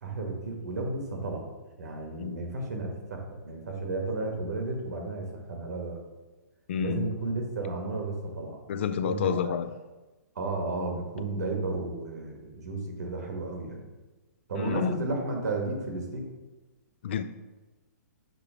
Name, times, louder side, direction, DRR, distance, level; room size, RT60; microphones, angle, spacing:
voice 1, 0.0-1.5 1.8-6.0 6.8-8.6 9.0-9.5 10.3-13.8 14.5-16.2, right 2 dB, 70° right, 1.4 m, -33 dB
voice 2, 6.7-7.1 8.7-9.7 14.5-15.0 17.0-17.2, left 7 dB, 40° left, 0.4 m, -29 dB
6.7 x 2.9 x 5.0 m
hypercardioid pair, 170°, 10 cm